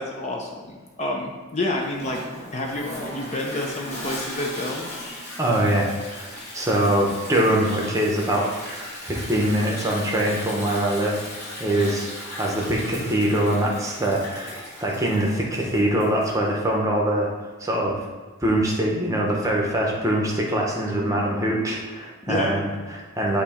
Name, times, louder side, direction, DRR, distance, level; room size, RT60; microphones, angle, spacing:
voice 1, 0.0-2.2 2.5-4.9 22.3-22.6, left 2 dB, 30° left, 0 dB, 0.6 m, -29 dB
Toilet flush, 1.8-16.4, left 1 dB, 50° left, 1.9 m, -37 dB
voice 2, 5.4-11.2 11.6-17.3 17.6-18.0 18.4-23.4, right 1 dB, 15° right, -2 dB, 0.8 m, -23 dB
7.8 x 2.8 x 4.2 m, 1.3 s
head